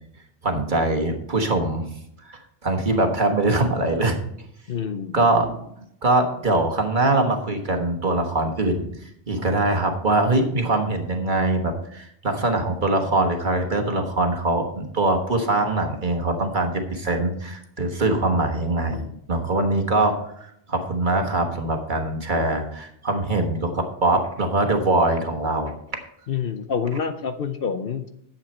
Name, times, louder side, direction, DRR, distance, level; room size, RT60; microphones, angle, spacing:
voice 1, 0.4-1.9 2.2-4.2 5.1-8.9 9.3-20.1 20.7-25.7, right 2 dB, 45° right, 3 dB, 1.5 m, -23 dB
voice 2, 4.7-5.3 18.9-19.1 26.3-28.1, left 6 dB, 55° left, 9 dB, 0.8 m, -27 dB
10.5 x 7.9 x 4.3 m, 0.73 s
omnidirectional pair, 1.2 m